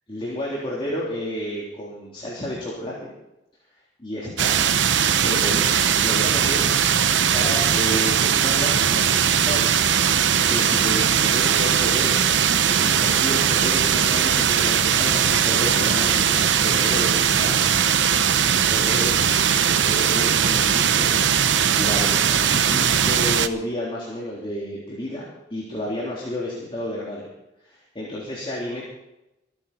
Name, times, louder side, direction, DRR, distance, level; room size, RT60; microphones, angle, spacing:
voice 1, 0.1-2.9 4.0-4.6 5.2-7.0 7.3-9.8 10.5-17.6 18.3-19.1 19.7-21.1 21.7-25.2 25.5-27.3 27.6-28.8, left 1 dB, 30° left, -5 dB, 3.7 m, -31 dB
sound 1, 4.4-23.5, right 8 dB, 75° right, 0.8 m, -19 dB
25.5 x 10.0 x 4.3 m, 0.92 s
head